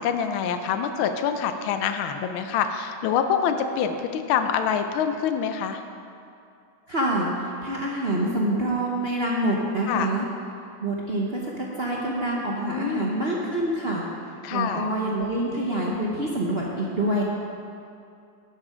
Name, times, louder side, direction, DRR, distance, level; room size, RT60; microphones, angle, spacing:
voice 1, 0.0-5.8 9.9-10.1 12.7-13.1 14.4-14.8, left 7 dB, 85° left, 7 dB, 1.5 m, -26 dB
voice 2, 6.9-10.2 10.8-14.0 14.5-17.2, right 1 dB, 45° right, -4 dB, 0.8 m, -26 dB
11.5 x 7.4 x 5.0 m, 2.5 s
omnidirectional pair, 2.2 m